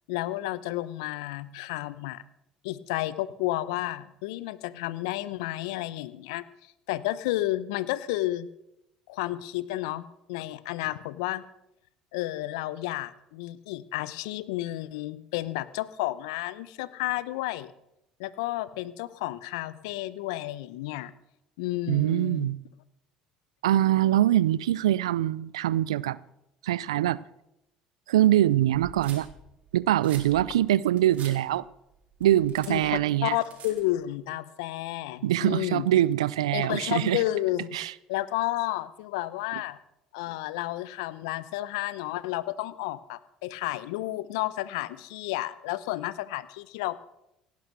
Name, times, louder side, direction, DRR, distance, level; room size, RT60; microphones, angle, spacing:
voice 1, 0.1-2.2 2.6-6.4 6.9-8.5 9.1-11.4 12.1-17.7 18.2-21.1 21.6-22.5 32.7-35.9 36.5-37.8 38.1-39.8 40.1-47.0, left 16 dB, 75° left, 0.8 m, -31 dB
voice 2, 21.9-22.6 23.6-26.2 26.6-27.2 28.1-29.3 29.7-31.7 32.2-33.4 35.2-37.2 37.7-37.9, right 13 dB, 85° right, 0.4 m, -23 dB
sound 1, 28.7-34.0, right 6 dB, 50° right, 4.1 m, -47 dB
17.5 x 10.5 x 6.2 m
hypercardioid pair, 65°, 3 cm